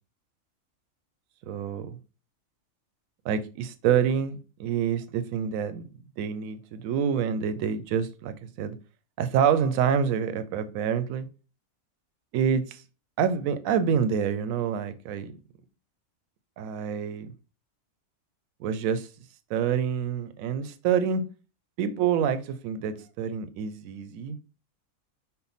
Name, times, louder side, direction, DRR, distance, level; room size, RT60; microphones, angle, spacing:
voice 1, 1.5-2.0 3.2-5.9 6.2-8.8 9.2-11.3 12.3-12.8 13.2-15.3 16.6-17.3 18.6-19.1 19.5-21.2 21.8-24.4, right 7 dB, 75° right, 1.0 m, -27 dB
5.5 x 2.1 x 4.0 m
omnidirectional pair, 1.5 m